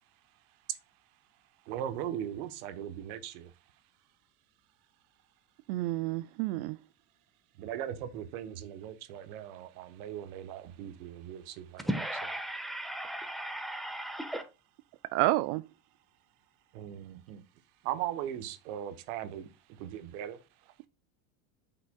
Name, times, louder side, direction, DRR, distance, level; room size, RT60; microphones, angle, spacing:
voice 1, 1.7-3.5 7.6-11.9 16.7-17.4 17.8-19.5 19.8-20.4, right 10 dB, 70° right, 1.1 m, -39 dB
voice 2, 5.7-6.8 15.1-15.6, right 17 dB, 55° right, 0.5 m, -29 dB
voice 3, 11.8-14.4, right 1 dB, ahead, 1.0 m, -36 dB
8.1 x 5.7 x 2.2 m
supercardioid pair, 115°, 46 cm